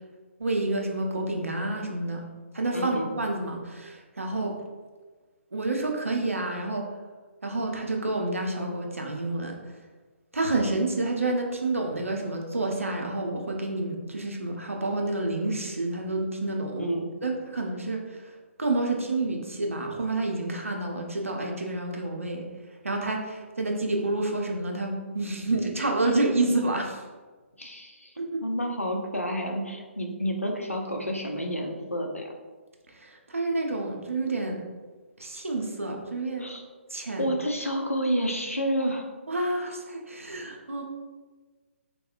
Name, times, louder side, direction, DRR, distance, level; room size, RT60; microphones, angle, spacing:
voice 1, 0.4-2.2 2.5-4.6 5.5-6.9 7.4-9.6 10.3-18.2 18.6-22.5 22.8-27.0 28.2-28.4 32.9-34.6 35.2-36.5 36.9-37.3 39.3-40.8, right 2 dB, 75° right, 1 dB, 0.5 m, -29 dB
voice 2, 2.7-3.1 16.8-17.0 27.6-28.1 28.4-32.3 36.4-36.6 37.2-39.1, equal, 90° left, 2 dB, 0.5 m, -29 dB
3.5 x 2.0 x 2.4 m, 1.3 s
figure-of-eight pair, 135°, 7 cm